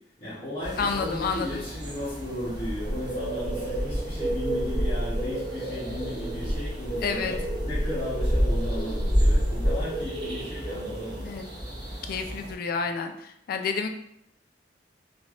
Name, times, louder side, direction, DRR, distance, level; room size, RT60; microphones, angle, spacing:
voice 1, 0.2-11.2, left 1 dB, 30° left, -11 dB, 0.9 m, -35 dB
sound 1, 0.6-12.5, equal, 25° right, 0.7 m, -29 dB
voice 2, 0.8-1.6 7.0-7.3 11.2-11.5 12.0-13.9, left 5 dB, 55° left, 5 dB, 0.3 m, -30 dB
3.3 x 2.5 x 2.4 m, 0.73 s
head